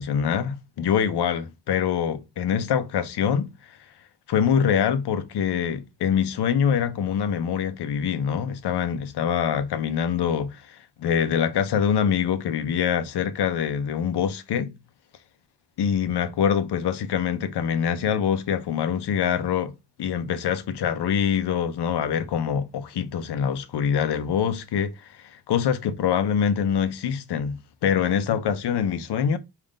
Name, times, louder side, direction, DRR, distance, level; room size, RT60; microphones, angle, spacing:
voice 1, 0.0-3.5 4.3-14.7 15.8-19.7 20.0-29.4, left 8 dB, 70° left, 0.6 m, -24 dB
3.6 x 2.5 x 3.7 m
wide cardioid pair, 155°, 41 cm